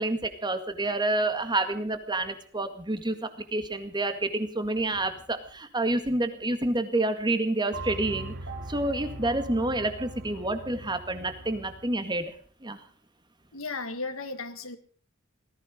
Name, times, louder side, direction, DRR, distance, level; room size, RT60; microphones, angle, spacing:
voice 1, 0.0-8.3 8.7-12.3 12.6-12.8, right 2 dB, 20° right, 8 dB, 1.9 m, -28 dB
sound 1, 7.7-11.9, right 2 dB, 60° right, 3.4 m, -40 dB
voice 2, 13.5-14.8, left 3 dB, 80° left, 8 dB, 1.9 m, -35 dB
18.5 x 14.5 x 5.2 m, 0.43 s
head